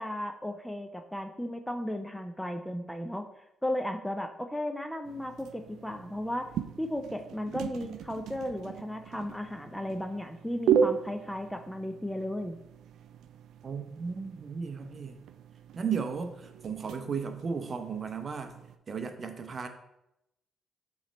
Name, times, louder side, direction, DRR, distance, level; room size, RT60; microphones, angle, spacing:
voice 1, 0.0-3.2 3.6-6.5 6.8-12.6, left 1 dB, 5° left, 6 dB, 0.6 m, -35 dB
sound 1, 5.0-18.8, right 7 dB, 80° right, 0.4 m, -36 dB
voice 2, 13.6-15.2 15.7-18.5 18.9-19.7, right 6 dB, 40° right, 7 dB, 0.7 m, -35 dB
7.1 x 3.2 x 5.1 m, 0.85 s
cardioid pair, 90°, 0 cm